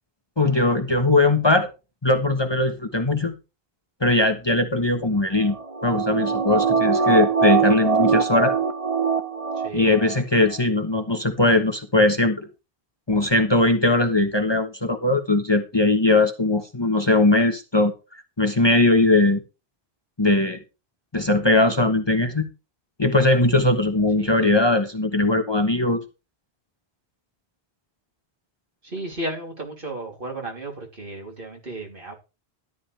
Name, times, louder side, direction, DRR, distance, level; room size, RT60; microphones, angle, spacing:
voice 1, 0.4-1.7 2.0-3.4 4.0-5.5 5.8-8.5 9.7-12.5 13.1-17.9 18.4-19.4 20.2-20.6 21.1-22.5 23.0-26.0, left 2 dB, 25° left, 5 dB, 1.2 m, -20 dB
sound 1, 5.4-10.2 10.5-10.6, right 6 dB, 35° right, 0.9 m, -22 dB
voice 2, 9.5-10.0 24.2-24.6 28.8-32.1, right 1 dB, 55° right, 0 dB, 3.4 m, -34 dB
13.0 x 11.0 x 3.3 m, 0.30 s
omnidirectional pair, 1.1 m